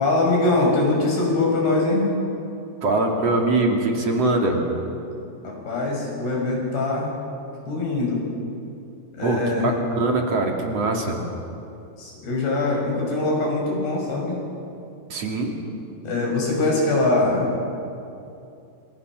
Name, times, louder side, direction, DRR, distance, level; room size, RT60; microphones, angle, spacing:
voice 1, 0.0-2.1 5.4-7.1 7.7-8.2 9.1-9.7 12.0-14.4 16.0-17.5, left 2 dB, 55° left, -1 dB, 7.9 m, -22 dB
voice 2, 2.8-4.6 9.2-11.2 15.1-15.5, right 2 dB, 40° right, 1 dB, 2.8 m, -22 dB
28.0 x 27.5 x 6.2 m, 2.7 s
omnidirectional pair, 5.8 m